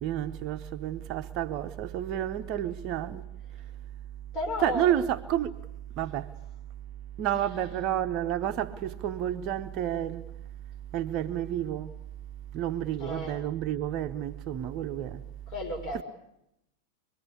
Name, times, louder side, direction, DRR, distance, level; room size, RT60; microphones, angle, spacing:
voice 1, 0.0-3.3 4.6-5.6 6.0-6.3 7.2-10.2 10.9-11.9 12.5-15.2, right 11 dB, 40° right, 0.9 m, -30 dB
voice 2, 4.3-5.0 13.0-13.4 15.5-16.0, left 1 dB, 35° left, 5.8 m, -33 dB
24.5 x 22.5 x 8.5 m
figure-of-eight pair, 90°, 0 cm